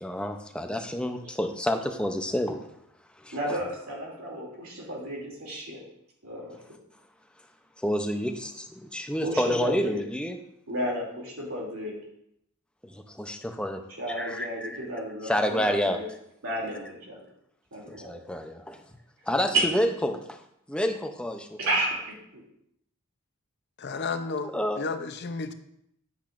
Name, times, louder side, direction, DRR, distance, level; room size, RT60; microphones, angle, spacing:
voice 1, 0.0-2.7 3.2-3.6 7.8-10.4 12.8-13.8 14.1-14.8 15.2-16.0 17.9-18.8 19.3-20.4 20.7-21.6 24.5-24.8, equal, 5° left, 5 dB, 0.6 m, -29 dB
voice 2, 3.3-5.8 6.2-6.6 9.2-10.0 10.7-12.0 14.0-16.0 16.4-17.2 17.7-18.1 19.5-19.6 21.6-22.0 22.3-22.4, right 1 dB, 80° right, -3 dB, 2.9 m, -32 dB
voice 3, 23.8-25.5, left 4 dB, 50° left, 9 dB, 0.7 m, -32 dB
10.0 x 8.8 x 2.6 m, 0.76 s
head